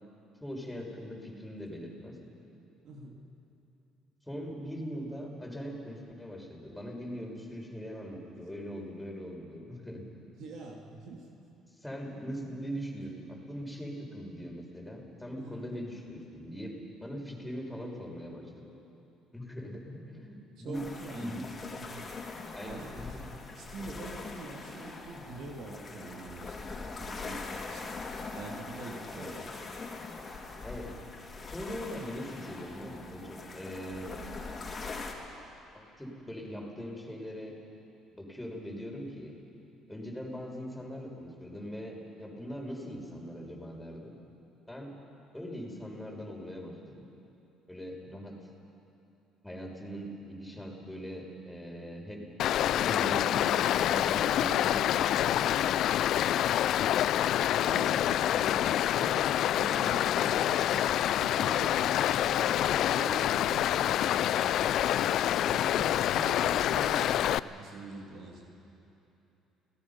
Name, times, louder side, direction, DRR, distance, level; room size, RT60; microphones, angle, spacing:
voice 1, 0.4-2.2 4.3-10.0 11.8-16.7 17.0-18.7 19.3-22.0 22.5-23.3 29.1-29.3 30.6-30.9 31.5-34.2 35.7-37.6 38.1-39.3 39.9-44.2 44.7-44.9 45.3-47.0 47.7-48.4 49.4-52.2 52.6-55.8, equal, 5° left, -1 dB, 5.7 m, -41 dB
voice 2, 2.8-3.2 10.4-11.3 15.3-15.6 20.6-21.5 21.7-22.1 22.6-23.1 23.6-27.9 28.3-29.5 57.6-58.7 58.9-60.8 61.2-65.9 66.1-68.4, right 3 dB, 65° right, 0 dB, 2.8 m, -44 dB
sound 1, 20.7-35.1, left 3 dB, 35° left, 3.5 m, -42 dB
Stream, 52.4-67.4, left 12 dB, 65° left, 0.4 m, -27 dB
29.5 x 18.0 x 5.7 m, 2.9 s
hypercardioid pair, 60°, 0 cm